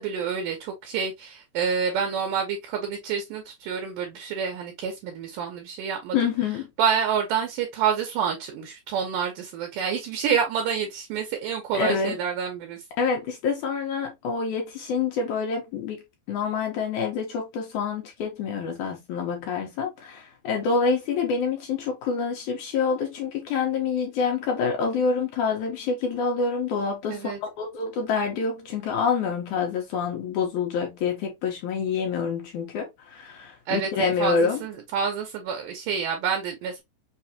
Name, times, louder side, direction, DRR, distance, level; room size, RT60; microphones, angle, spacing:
voice 1, 0.0-6.3 6.8-12.8 27.1-27.4 33.7-36.8, right 7 dB, 75° right, 2.1 m, -28 dB
voice 2, 6.1-6.7 11.7-12.2 13.0-16.0 16.3-34.6, left 5 dB, 75° left, 1.8 m, -27 dB
5.9 x 2.6 x 2.7 m
omnidirectional pair, 4.6 m